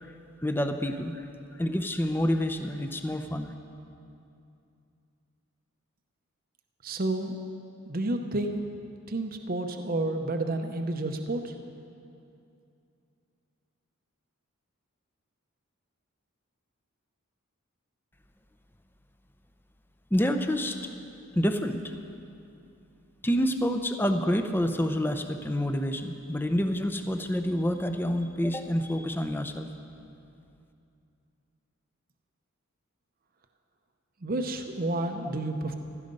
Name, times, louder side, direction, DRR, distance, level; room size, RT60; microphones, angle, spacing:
voice 1, 0.4-1.3 1.6-3.5 20.1-20.8 21.3-22.0 23.2-29.7, equal, 10° left, 8 dB, 0.6 m, -28 dB
voice 2, 6.8-7.4 7.9-8.6 9.1-11.5 34.2-35.8, right 2 dB, 40° right, 5 dB, 0.7 m, -30 dB
16.0 x 12.5 x 5.4 m, 2.6 s
head